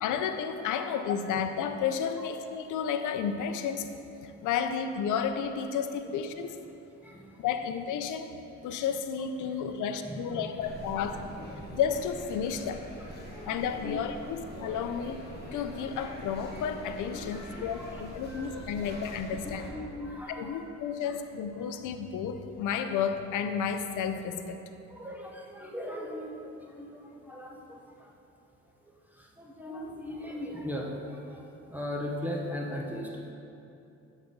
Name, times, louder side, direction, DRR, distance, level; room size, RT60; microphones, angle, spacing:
voice 1, 0.0-3.9 4.2-6.5 7.4-11.2 11.7-12.9 13.5-15.2 15.5-19.7 20.4-24.6, left 7 dB, 80° left, 8 dB, 0.5 m, -32 dB
voice 2, 4.2-4.7 6.9-7.4 9.4-9.8 10.0-11.2 11.5-11.7 13.2-13.5 13.8-14.0 14.7-15.0 17.1-18.9 19.4-20.8 21.0-21.2 21.6-21.7 24.9-28.1 28.6-33.3, left 1 dB, 5° right, -2 dB, 0.8 m, -40 dB
sound 1, 10.6-19.7, left 1 dB, 35° left, 1.6 m, -44 dB
8.1 x 4.1 x 5.2 m, 2.8 s
cardioid pair, 90°, 30 cm